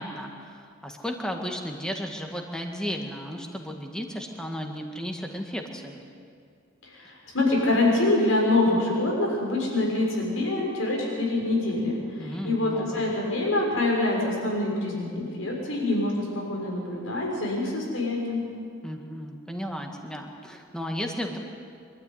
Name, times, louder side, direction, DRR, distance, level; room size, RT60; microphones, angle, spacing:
voice 1, 0.0-6.0 7.0-7.1 12.2-13.0 18.8-21.4, equal, 5° left, 2 dB, 1.9 m, -34 dB
voice 2, 7.0-18.4, left 2 dB, 90° left, -2 dB, 6.5 m, -25 dB
25.0 x 12.5 x 9.7 m, 2.3 s
head